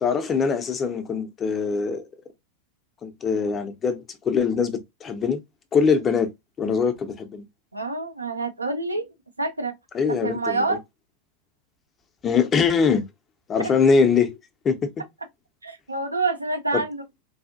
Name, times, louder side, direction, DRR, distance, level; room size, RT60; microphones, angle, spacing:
voice 1, 0.0-2.0 3.0-5.4 5.7-6.3 6.6-7.4 9.9-10.8 12.2-13.0 13.5-14.4 14.6-14.9 16.7-16.8, left 5 dB, 25° left, 0.7 m, -22 dB
voice 2, 7.7-9.7 10.1-10.8 13.6-13.7 15.6-17.0, right 3 dB, 85° right, 0.5 m, -27 dB
4.0 x 2.5 x 2.5 m
figure-of-eight pair, 90°, 0 cm